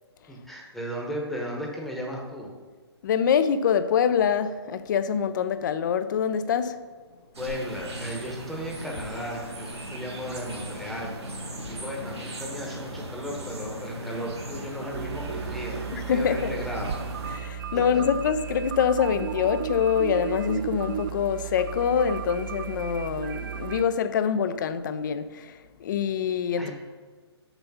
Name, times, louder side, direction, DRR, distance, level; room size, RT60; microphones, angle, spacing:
voice 1, 0.3-2.5 7.4-11.1 11.7-15.8 16.1-17.0 17.9-18.0 26.6-26.7, equal, ahead, 1.0 m, -35 dB
voice 2, 3.0-6.8 15.9-16.5 17.3-26.7, left 7 dB, 45° left, 0.5 m, -25 dB
sound 1, 7.3-17.4, right 1 dB, 75° right, 1.8 m, -37 dB
sound 2, 14.9-23.8, right 8 dB, 50° right, 0.4 m, -34 dB
6.6 x 6.0 x 5.5 m
figure-of-eight pair, 135°, 14 cm